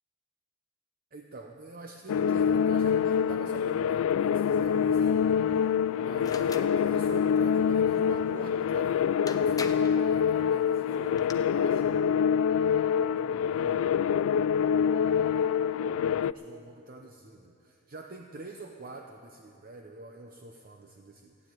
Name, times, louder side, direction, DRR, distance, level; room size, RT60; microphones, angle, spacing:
voice 1, 1.1-12.1 13.0-14.3 14.7-14.9 15.2-15.8 16.0-21.5, right 2 dB, 45° right, 3 dB, 0.7 m, -46 dB
sound 1, 2.1-16.3, left 7 dB, 85° left, 0.3 m, -25 dB
sound 2, 6.2-6.7 8.8-8.9 9.3-10.0 10.9-11.3, left 4 dB, 20° left, 0.6 m, -40 dB
15.0 x 9.2 x 9.0 m, 2.6 s
head